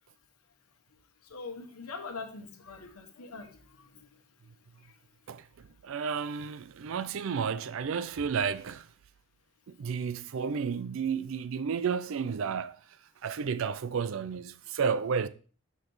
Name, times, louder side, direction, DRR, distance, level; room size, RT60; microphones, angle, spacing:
voice 1, 1.2-5.1 5.6-5.7 10.0-10.1, left 4 dB, 80° left, 1.1 m, -44 dB
voice 2, 5.8-8.9 9.7-12.8 13.2-15.3, right 6 dB, 65° right, 0.4 m, -32 dB
6.0 x 5.8 x 3.4 m
head